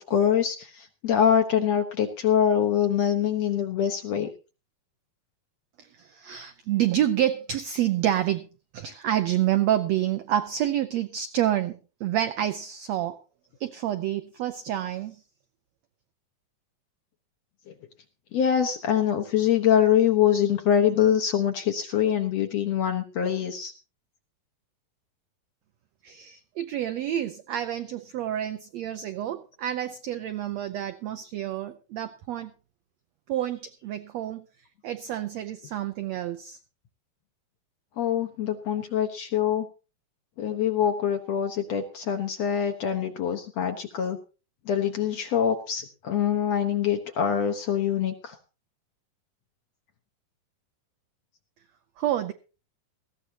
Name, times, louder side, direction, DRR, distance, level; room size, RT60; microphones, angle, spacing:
voice 1, 0.0-4.3 18.3-23.7 38.0-39.7 40.4-44.2 44.7-48.4, left 9 dB, 60° left, 5 dB, 1.9 m, -24 dB
voice 2, 6.2-8.5 8.7-13.2 13.6-15.1 26.0-32.5 33.3-34.4 34.8-36.6 52.0-52.3, right 11 dB, 85° right, 9 dB, 1.5 m, -28 dB
18.5 x 15.0 x 2.9 m, 0.32 s
omnidirectional pair, 4.0 m